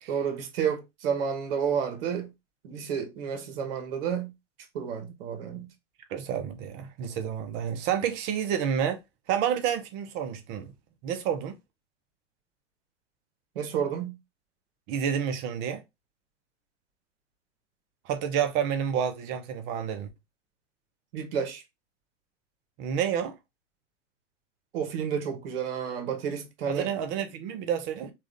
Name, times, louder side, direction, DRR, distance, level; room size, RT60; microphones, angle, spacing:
voice 1, 0.1-2.3 2.6-4.3 4.7-5.7 13.5-14.2 21.1-21.6 24.7-26.9 28.0-28.1, right 7 dB, 50° right, 1.0 m, -30 dB
voice 2, 6.1-9.0 9.3-10.7 11.0-11.6 14.9-15.8 18.1-20.1 22.8-23.4 26.7-28.1, right 8 dB, 30° right, 0.7 m, -29 dB
3.6 x 2.5 x 3.5 m
figure-of-eight pair, 95°, 37 cm